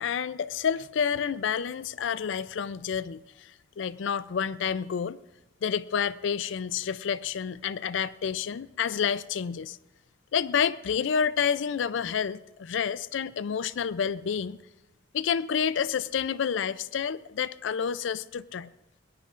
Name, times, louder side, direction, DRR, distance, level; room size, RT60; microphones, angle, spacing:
voice 1, 0.0-5.2 5.6-9.8 10.3-14.6 15.1-18.7, left 7 dB, 70° left, 0.4 m, -29 dB
22.0 x 18.0 x 2.5 m
head